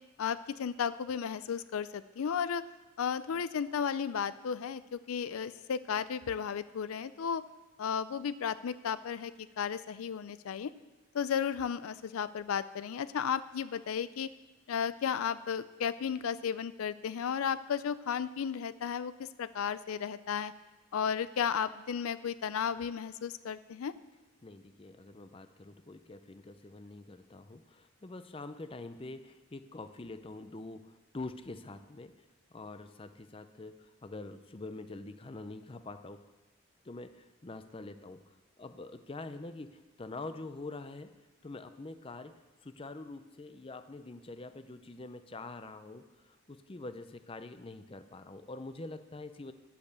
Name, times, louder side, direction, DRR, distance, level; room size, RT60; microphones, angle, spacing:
voice 1, 0.2-2.6 3.0-7.4 7.8-10.7 11.1-14.3 14.7-20.5 20.9-23.9, left 7 dB, 80° left, 14 dB, 0.4 m, -34 dB
voice 2, 24.4-32.1 32.5-36.2 36.8-41.1 41.4-49.5, left 2 dB, 25° left, 10 dB, 0.5 m, -45 dB
10.5 x 8.6 x 6.8 m, 1.2 s
head